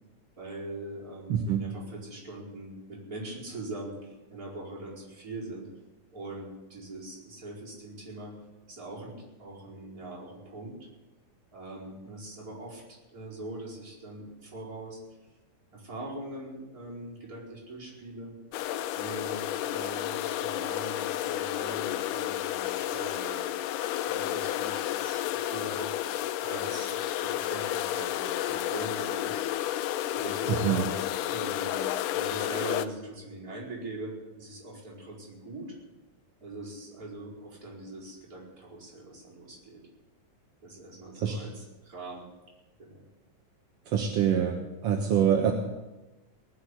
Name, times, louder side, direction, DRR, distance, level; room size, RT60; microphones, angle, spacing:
voice 1, 0.4-5.7 6.1-8.3 8.7-10.9 11.5-15.0 15.7-18.3 18.9-23.5 24.0-25.9 26.4-29.3 29.6-29.8 30.1-30.9 31.3-31.9 32.1-35.8 36.4-39.8 40.6-42.3 42.8-43.0, right 2 dB, 25° right, -6 dB, 5.1 m, -42 dB
voice 2, 1.3-1.6 30.5-30.8 41.2-41.4 43.9-44.6 44.8-45.5, right 8 dB, 60° right, 2 dB, 1.7 m, -25 dB
sound 1, 18.5-32.9, left 13 dB, 80° left, 2.0 m, -31 dB
19.5 x 6.7 x 10.0 m, 1.1 s
omnidirectional pair, 4.1 m